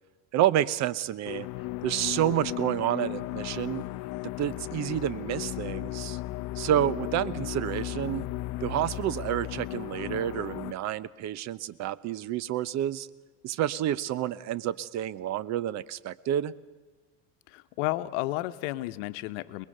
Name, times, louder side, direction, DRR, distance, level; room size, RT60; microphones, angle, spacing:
voice 1, 0.3-1.5 1.8-3.8 4.4-6.2 6.6-8.3 8.6-13.1 13.4-16.5, right 12 dB, 45° right, 18 dB, 0.8 m, -29 dB
sound 1, 1.2-10.7, left 17 dB, 55° left, 0.7 m, -35 dB
voice 2, 17.5-19.7, left 18 dB, 80° left, 12 dB, 1.0 m, -32 dB
23.0 x 21.0 x 6.6 m, 1.2 s
supercardioid pair, 125°, 37 cm